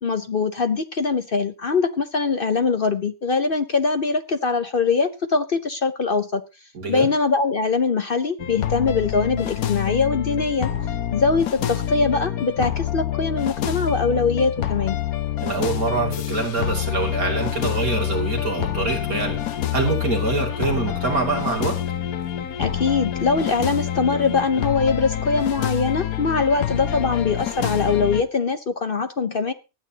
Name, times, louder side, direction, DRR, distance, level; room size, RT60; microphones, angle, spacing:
voice 1, 0.0-6.4 6.9-10.7 11.1-15.0 22.6-29.5, left 4 dB, 45° left, 10 dB, 0.9 m, -22 dB
voice 2, 6.7-7.1 15.4-19.4 19.7-21.8, right 4 dB, 75° right, 0 dB, 3.3 m, -25 dB
sound 1, 8.4-28.2, left 11 dB, 85° left, 1.4 m, -27 dB
25.0 x 8.8 x 2.9 m, 0.29 s
omnidirectional pair, 1.5 m